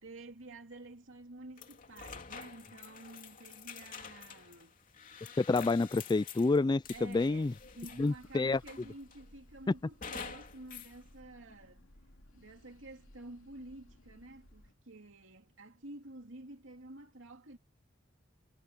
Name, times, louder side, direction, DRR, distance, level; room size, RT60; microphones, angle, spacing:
voice 1, 0.0-4.7 6.9-11.9 12.3-17.6, right 2 dB, 75° right, 2.8 m, -50 dB
sound 1, 1.6-8.2 8.7-9.3 10.0-10.9, left 6 dB, 45° left, 3.1 m, -48 dB
voice 2, 5.4-7.5 8.0-8.6, left 3 dB, 20° left, 0.3 m, -28 dB
sound 2, 6.8-14.7, left 1 dB, 85° left, 2.9 m, -60 dB
head